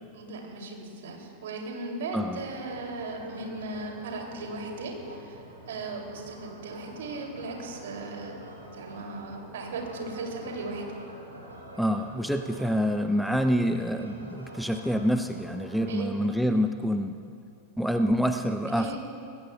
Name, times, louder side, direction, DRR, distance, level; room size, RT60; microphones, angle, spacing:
voice 1, 0.1-8.3 8.7-10.9 15.9-16.0 18.7-19.0, right 3 dB, 60° right, 1 dB, 2.7 m, -37 dB
sound 1, 2.3-16.4, right 1 dB, 80° right, 3.1 m, -46 dB
voice 2, 11.8-17.1 17.8-19.0, equal, ahead, 6 dB, 0.5 m, -26 dB
26.0 x 20.0 x 2.3 m, 2.6 s
figure-of-eight pair, 90°, 0 cm